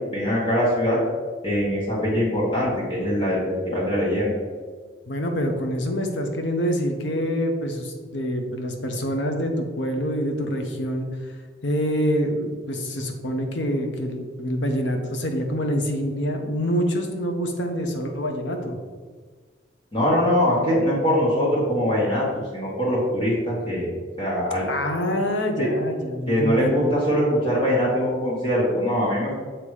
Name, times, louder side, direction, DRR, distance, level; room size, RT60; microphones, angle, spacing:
voice 1, 0.1-1.0 1.4-3.4 3.6-4.3 19.9-22.3 22.5-23.9 24.2-24.6 25.6-25.7 26.3-29.3, equal, 25° left, -6 dB, 1.3 m, -22 dB
voice 2, 5.1-11.1 11.6-18.8 24.7-26.9, equal, 85° left, 4 dB, 0.8 m, -26 dB
7.0 x 2.9 x 4.8 m, 1.5 s
head